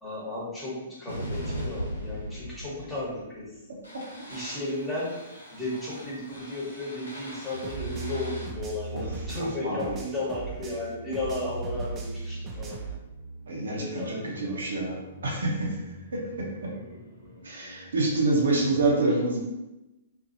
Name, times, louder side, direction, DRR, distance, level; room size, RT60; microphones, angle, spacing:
voice 1, 0.0-3.5 4.3-5.1 5.5-12.8 13.7-14.9 16.4-16.5 16.7-17.0 17.3-17.4, left 2 dB, 10° left, -7 dB, 1.2 m, -34 dB
sound 1, 1.1-18.9, right 1 dB, 85° left, 0.8 m, -40 dB
sound 2, 7.6-10.9 11.1-13.0, right 5 dB, 20° right, 0.4 m, -40 dB
voice 2, 9.3-9.9 13.5-14.9 15.2-15.7 17.4-19.4, right 2 dB, 65° right, -3 dB, 0.7 m, -26 dB
2.7 x 2.6 x 2.6 m, 0.99 s
figure-of-eight pair, 115°, 0 cm